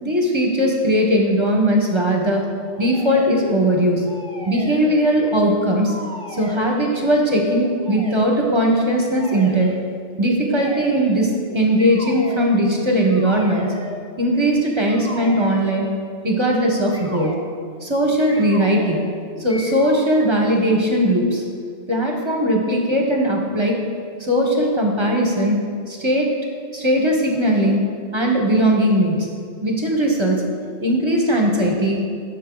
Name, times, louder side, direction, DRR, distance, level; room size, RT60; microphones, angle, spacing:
voice 1, 0.0-2.4 2.8-4.0 4.5-6.0 6.3-9.7 10.2-13.7 14.2-15.9 16.2-17.3 17.8-19.0 19.4-21.4 21.9-23.8 24.2-26.3 26.7-27.9 28.1-29.3 29.6-30.4 30.8-32.0, equal, 25° right, 0 dB, 1.1 m, -19 dB
sound 1, 2.7-3.6 4.0-5.5 5.8-7.1 7.8-8.3 9.1-9.8 10.5-11.2 11.8-12.5 13.0-14.0 14.8-16.0 16.9-17.4 18.3-19.1 19.5-20.1, equal, 5° left, 0.6 m, -36 dB
11.0 x 6.6 x 3.9 m, 2.2 s
omnidirectional pair, 1.1 m